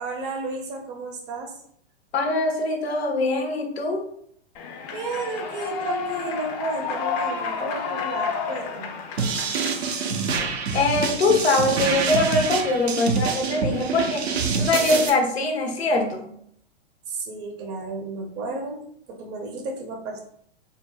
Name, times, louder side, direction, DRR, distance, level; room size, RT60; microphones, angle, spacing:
voice 1, 0.0-1.5 4.9-9.0 17.1-20.2, right 3 dB, 35° right, 2 dB, 0.6 m, -32 dB
voice 2, 2.1-4.0 10.7-14.3 14.6-16.3, left 2 dB, 75° left, 3 dB, 0.7 m, -22 dB
Human voice / Clapping / Cheering, 4.5-10.5, left 5 dB, 40° left, 0.4 m, -31 dB
sound 1, 9.2-15.1, right 5 dB, 75° right, 0.6 m, -26 dB
3.7 x 2.0 x 2.2 m, 0.67 s
figure-of-eight pair, 105°, 32 cm